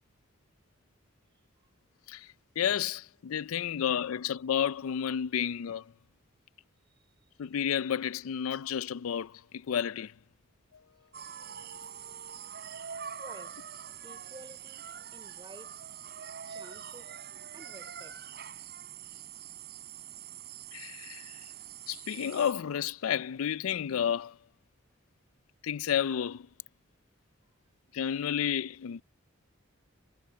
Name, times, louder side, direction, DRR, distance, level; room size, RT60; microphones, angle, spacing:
voice 1, 2.6-5.9 7.4-10.1 20.7-21.4 21.9-24.4 25.6-26.5 27.9-29.0, left 8 dB, 85° left, 0.4 m, -31 dB
sound 1, 11.1-22.5, right 8 dB, 50° right, 6.4 m, -44 dB
voice 2, 13.2-13.7 14.0-16.0 16.4-18.3, right 2 dB, 20° right, 4.3 m, -52 dB
head